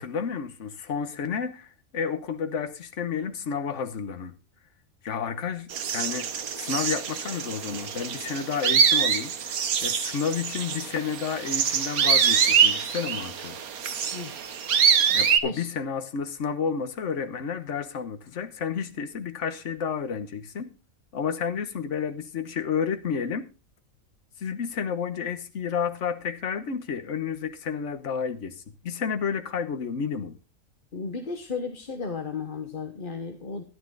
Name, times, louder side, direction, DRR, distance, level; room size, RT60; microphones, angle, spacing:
voice 1, 0.0-4.3 5.0-6.3 6.6-13.6 15.1-20.7 21.1-23.5 24.4-30.4, left 6 dB, 60° left, 1.4 m, -31 dB
sound 1, 5.7-15.4, right 7 dB, 85° right, 1.5 m, -24 dB
voice 2, 14.1-14.5 15.4-15.7 30.9-33.6, left 4 dB, 40° left, 1.3 m, -34 dB
13.0 x 11.5 x 3.9 m
omnidirectional pair, 1.5 m